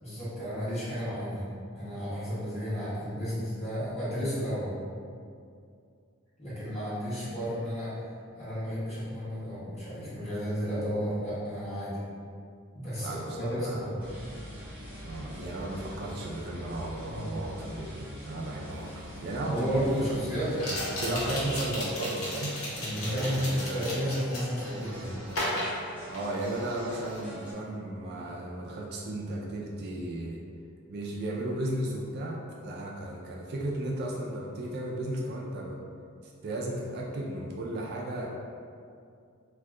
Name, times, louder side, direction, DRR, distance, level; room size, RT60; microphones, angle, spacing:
voice 1, 0.0-1.4 1.7-4.7 6.4-7.9 8.3-12.0 12.7-14.0 17.1-17.3 19.5-21.2 22.7-25.2, equal, 30° left, -12 dB, 1.2 m, -32 dB
voice 2, 13.0-14.5 15.0-20.1 21.0-22.5 23.0-24.0 26.0-30.4 30.9-35.8 36.2-38.3, right 1 dB, 45° right, -2 dB, 0.3 m, -35 dB
sound 1, 14.0-27.5, equal, 5° right, 0.6 m, -44 dB
sound 2, 18.8-18.9 20.5-24.7 25.3-26.6 26.9-27.2, left 1 dB, 70° left, 0.8 m, -35 dB
2.6 x 2.2 x 3.5 m, 2.3 s
head